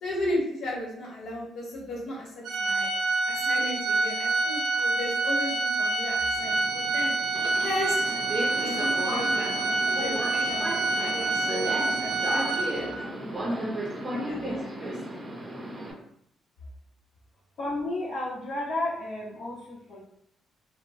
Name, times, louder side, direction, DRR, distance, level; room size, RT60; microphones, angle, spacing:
voice 1, 0.0-2.9 3.2-7.1 7.6-8.0 8.5-13.8 14.1-14.9, left 1 dB, 80° left, -3 dB, 1.1 m, -35 dB
Organ, 2.4-13.1, right 3 dB, 80° right, 0.5 m, -27 dB
Subway metro underground, 6.4-15.9, right 1 dB, 25° right, 0.5 m, -34 dB
voice 2, 17.6-20.0, left 2 dB, 60° left, -8 dB, 0.7 m, -32 dB
2.9 x 2.0 x 2.6 m, 0.73 s
cardioid pair, 90°, 0 cm